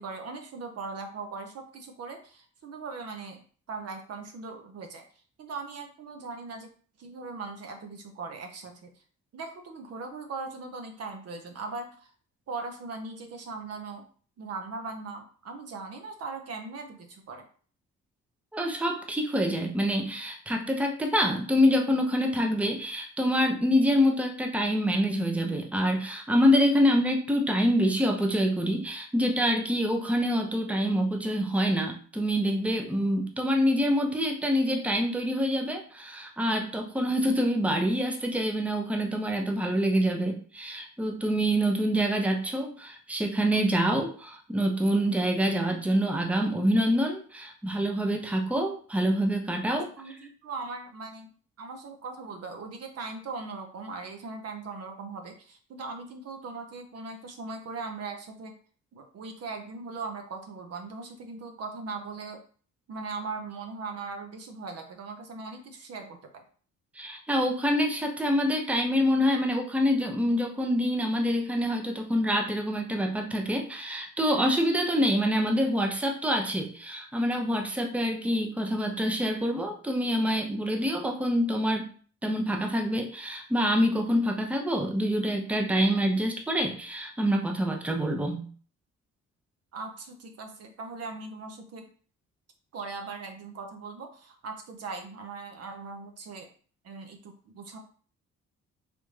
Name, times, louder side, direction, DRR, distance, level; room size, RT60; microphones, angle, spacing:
voice 1, 0.0-5.0 5.4-6.7 7.0-8.9 9.3-12.1 12.5-14.1 14.4-17.5 50.0-51.3 51.6-58.5 58.9-62.4 62.9-66.4 89.7-91.8 92.7-96.5 96.8-97.8, right 4 dB, 55° right, 4 dB, 0.7 m, -39 dB
voice 2, 18.5-49.9 67.0-81.9 82.2-88.5, equal, 5° right, 2 dB, 0.6 m, -26 dB
3.4 x 2.5 x 3.1 m, 0.43 s
cardioid pair, 90°, 30 cm